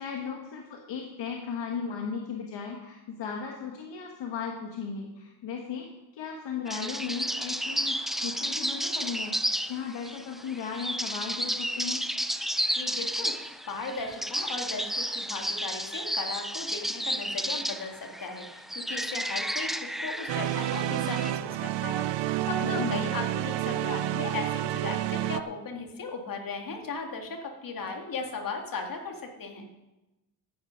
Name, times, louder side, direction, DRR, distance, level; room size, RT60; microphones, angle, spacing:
voice 1, 0.0-5.9 6.1-12.0 22.6-23.0, left 6 dB, 70° left, 1 dB, 1.6 m, -36 dB
sound 1, 6.7-21.3, equal, ahead, 0.4 m, -32 dB
voice 2, 12.7-29.7, left 4 dB, 50° left, 3 dB, 2.3 m, -37 dB
sound 2, 20.3-25.4, right 14 dB, 70° right, 0.6 m, -29 dB
13.0 x 9.4 x 5.2 m, 1.0 s
cardioid pair, 105°, 44 cm